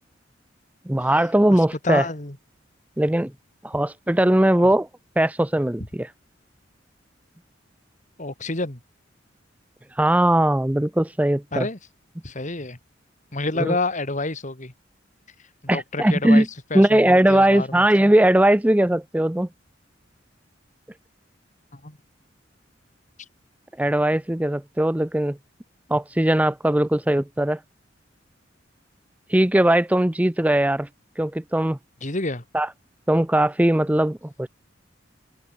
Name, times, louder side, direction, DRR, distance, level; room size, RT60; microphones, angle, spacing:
voice 1, 0.9-2.1 3.0-3.3 3.6-4.9 5.2-6.1 10.0-11.7 13.6-13.8 15.7-16.5 16.7-19.5 23.8-25.4 25.9-27.6 29.3-30.9 31.2-31.8 32.5-32.7 33.1-34.5, right 1 dB, 10° right, 0.6 m, -19 dB
voice 2, 1.5-2.4 4.6-4.7 8.2-8.8 11.5-11.8 12.2-12.8 13.3-14.7 15.7-17.8 21.7-22.0 32.0-32.4, left 2 dB, 40° left, 3.0 m, -29 dB
open air
head